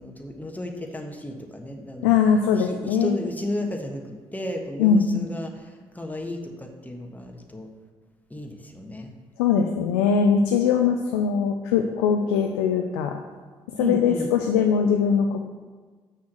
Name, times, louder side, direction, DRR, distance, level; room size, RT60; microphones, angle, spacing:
voice 1, 0.0-2.1 2.6-7.7 8.3-9.1 13.8-14.3, left 1 dB, 10° left, 3 dB, 1.4 m, -33 dB
voice 2, 2.0-3.2 4.8-5.3 9.4-13.2 13.7-15.4, left 6 dB, 85° left, 4 dB, 0.5 m, -21 dB
6.2 x 5.8 x 6.2 m, 1.4 s
hypercardioid pair, 45°, 14 cm